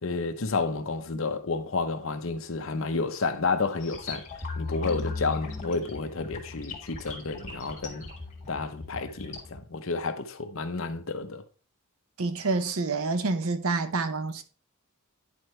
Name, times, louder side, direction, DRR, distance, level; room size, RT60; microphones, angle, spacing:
voice 1, 0.0-4.2 4.6-8.1 8.5-11.4, left 3 dB, 60° left, 0.8 m, -30 dB
sound 1, 3.8-9.6, left 3 dB, 35° left, 1.8 m, -38 dB
voice 2, 12.2-14.4, right 3 dB, 70° right, 0.7 m, -28 dB
9.7 x 4.5 x 3.2 m
head